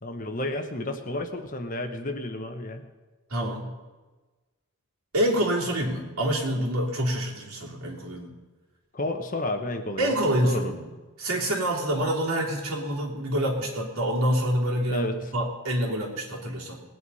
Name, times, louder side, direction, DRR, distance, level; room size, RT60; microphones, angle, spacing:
voice 1, 0.0-2.8 8.9-10.1 10.4-10.7 14.9-15.3, left 1 dB, 35° left, 6 dB, 1.2 m, -31 dB
voice 2, 3.3-3.7 5.1-8.3 10.0-10.8 11.2-15.1 15.3-16.8, right 1 dB, 75° right, -3 dB, 3.3 m, -26 dB
19.5 x 9.3 x 5.6 m, 1.2 s
head